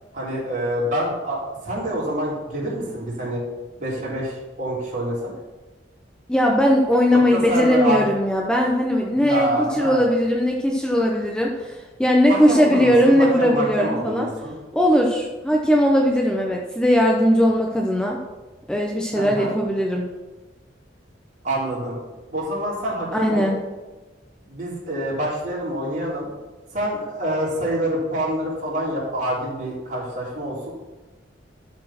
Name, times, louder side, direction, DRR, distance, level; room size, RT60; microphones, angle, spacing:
voice 1, 0.1-3.4 3.8-5.3 7.1-8.0 9.2-10.0 12.3-14.5 19.2-19.5 21.4-22.0 22.3-23.5 24.5-26.3 26.7-30.7, right 1 dB, 45° right, -6 dB, 3.6 m, -26 dB
voice 2, 6.3-14.3 14.7-18.2 18.7-20.1 23.1-23.6, equal, 5° left, 0 dB, 0.8 m, -19 dB
12.0 x 4.4 x 5.9 m, 1.2 s
head